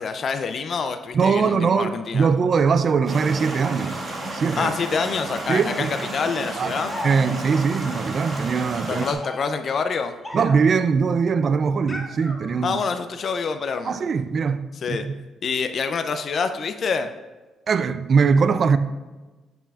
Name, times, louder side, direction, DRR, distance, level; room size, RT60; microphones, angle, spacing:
voice 1, 0.0-2.3 4.6-7.0 8.9-10.1 12.6-14.0 14.8-15.1 15.4-17.1, left 5 dB, 50° left, 0.4 m, -26 dB
voice 2, 1.1-4.0 4.3-4.7 5.5-5.9 6.6-6.7 7.0-9.1 10.3-12.8 13.8-14.6 14.9-15.1 17.7-18.8, right 5 dB, 50° right, 0.4 m, -21 dB
sound 1, 3.1-9.1, right 2 dB, 30° right, 1.7 m, -32 dB
sound 2, 6.8-7.7 8.9-10.9 11.9-13.0, left 1 dB, 20° left, 0.9 m, -37 dB
8.8 x 5.7 x 2.4 m
cardioid pair, 90°, 0 cm